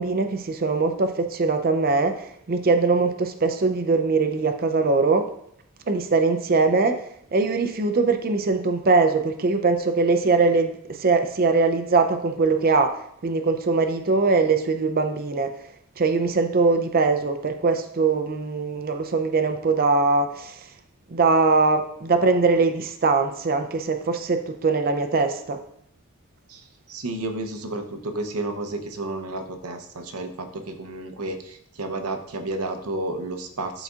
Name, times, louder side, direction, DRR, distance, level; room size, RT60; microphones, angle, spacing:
voice 1, 0.0-5.3 5.9-7.0 7.3-15.5 16.0-20.7 21.1-25.6, right 4 dB, 40° right, 7 dB, 0.5 m, -22 dB
voice 2, 26.5-33.8, right 2 dB, 80° right, 6 dB, 0.8 m, -31 dB
12.0 x 4.0 x 2.4 m, 0.71 s
head